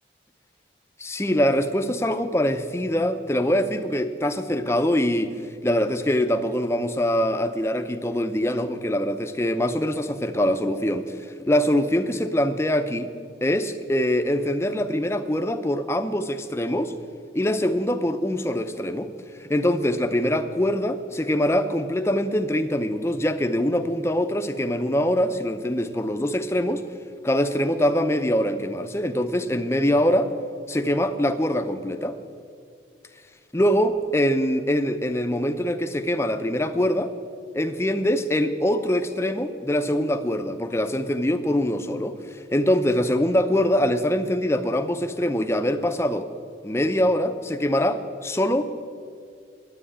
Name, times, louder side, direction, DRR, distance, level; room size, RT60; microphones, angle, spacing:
voice 1, 1.0-5.3 5.6-13.1 13.4-16.9 17.3-19.1 19.4-26.8 27.2-30.3 30.7-32.2 33.5-37.1 37.5-46.3 46.6-48.7, equal, 15° left, 8 dB, 0.5 m, -23 dB
10.0 x 8.4 x 9.9 m, 2.3 s
head